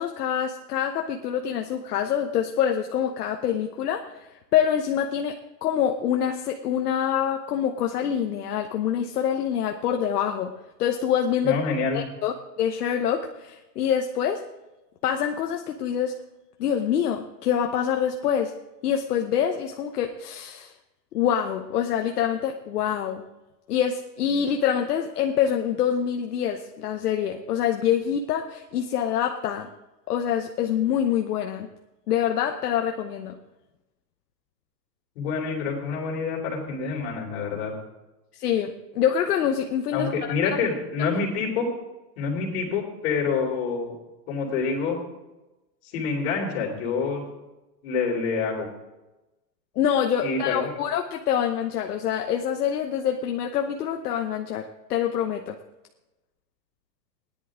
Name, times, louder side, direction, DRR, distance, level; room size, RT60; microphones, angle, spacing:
voice 1, 0.0-10.5 10.8-11.6 11.9-14.4 15.0-16.2 16.6-18.5 18.8-20.7 21.1-23.2 23.7-29.7 30.1-31.7 32.1-33.4 38.3-40.1 49.8-55.6, left 9 dB, 65° left, 4 dB, 1.1 m, -25 dB
voice 2, 11.4-12.0 35.2-37.7 39.9-41.7 42.2-43.9 44.3-45.0 45.9-47.2 47.8-48.7 50.2-50.7, left 5 dB, 40° left, 0 dB, 3.7 m, -27 dB
17.0 x 10.5 x 3.7 m, 1.0 s
supercardioid pair, 180°, 49 cm